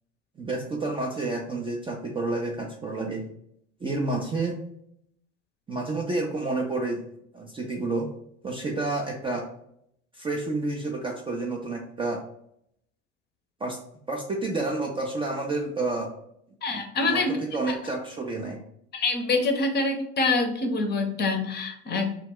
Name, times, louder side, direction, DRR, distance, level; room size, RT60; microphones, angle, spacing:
voice 1, 0.4-3.3 3.8-4.6 5.7-7.0 7.3-8.1 8.4-9.5 10.1-12.2 13.6-13.8 14.1-16.1 16.7-18.6, right 2 dB, 15° right, -1 dB, 0.3 m, -29 dB
voice 2, 16.6-17.3 17.7-17.8 18.9-22.2, left 3 dB, 30° left, 4 dB, 0.6 m, -25 dB
2.2 x 2.1 x 3.5 m, 0.72 s
hypercardioid pair, 70°, 34 cm